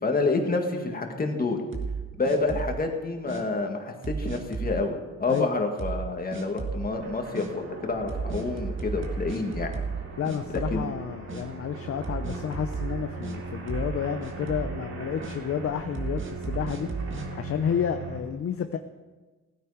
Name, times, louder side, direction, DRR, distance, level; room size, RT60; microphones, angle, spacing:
voice 1, 0.0-1.6 2.2-9.7 10.5-10.8, left 3 dB, 30° left, 3 dB, 2.1 m, -28 dB
sound 1, 1.7-2.8 3.3-3.4 4.0-4.8 5.3-5.4 5.8-6.1 6.3-6.8 7.3-7.5 8.1-10.0 10.2-11.0 11.3-11.4 12.0-13.4 13.7-14.0 14.2-14.7 15.2-15.4 15.9-17.3, right 4 dB, 40° right, 1.8 m, -33 dB
sound 2, 6.8-18.2, right 3 dB, 60° right, 2.7 m, -39 dB
voice 2, 10.2-16.9 17.3-18.8, left 8 dB, 50° left, 9 dB, 0.7 m, -30 dB
16.5 x 9.3 x 5.0 m, 1.3 s
cardioid pair, 90°, 30 cm